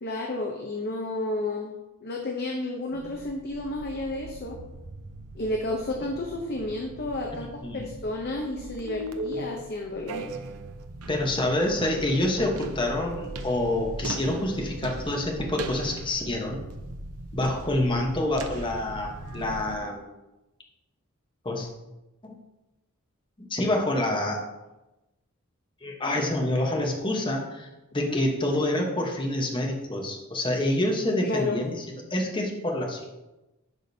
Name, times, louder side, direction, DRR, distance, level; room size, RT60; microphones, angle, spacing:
voice 1, 0.0-1.7 2.0-4.6 5.4-10.3 28.1-28.2 31.2-31.7, left 2 dB, 45° left, 2 dB, 0.7 m, -31 dB
sound 1, 2.9-19.8, right 2 dB, 90° right, 0.6 m, -39 dB
voice 2, 7.3-7.9 11.1-16.6 17.3-20.0 21.4-21.7 22.2-22.4 23.4-24.4 25.8-27.7 27.9-33.0, left 1 dB, 20° left, 0 dB, 1.0 m, -27 dB
10.5 x 5.1 x 2.7 m, 1.0 s
head